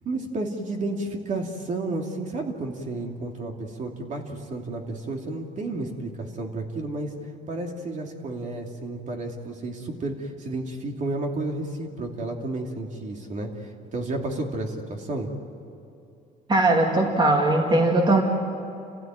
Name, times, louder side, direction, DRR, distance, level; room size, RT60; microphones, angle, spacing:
voice 1, 0.0-7.1 7.5-15.3, right 2 dB, 45° right, 2 dB, 2.8 m, -31 dB
voice 2, 16.5-18.2, right 2 dB, 25° right, 1 dB, 2.4 m, -20 dB
29.0 x 15.5 x 9.2 m, 2.7 s
cardioid pair, 110°, 17 cm